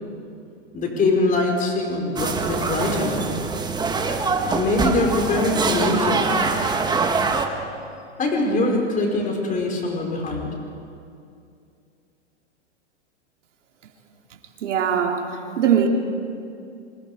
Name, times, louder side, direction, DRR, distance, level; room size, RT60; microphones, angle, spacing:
voice 1, 0.7-3.3 4.5-6.4 8.2-10.5, left 2 dB, 20° left, 5.3 m, -23 dB
sound 1, 2.2-7.5, right 4 dB, 10° right, 1.7 m, -24 dB
voice 2, 14.6-15.9, right 8 dB, 75° right, 3.3 m, -21 dB
27.0 x 26.0 x 5.1 m
hypercardioid pair, 125°, 36 cm